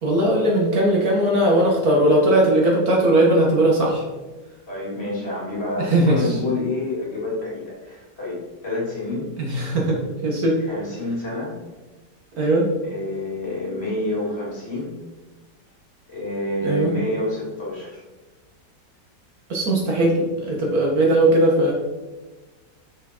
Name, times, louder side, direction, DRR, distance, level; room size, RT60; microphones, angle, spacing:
voice 1, 0.0-4.0 5.8-6.3 9.4-10.6 12.4-12.7 16.6-16.9 19.5-21.7, right 1 dB, 55° right, -1 dB, 1.8 m, -19 dB
voice 2, 4.7-9.3 10.6-11.6 12.8-15.0 16.1-18.0, left 2 dB, 35° left, -6 dB, 2.9 m, -28 dB
6.5 x 6.1 x 4.3 m, 1.2 s
omnidirectional pair, 1.9 m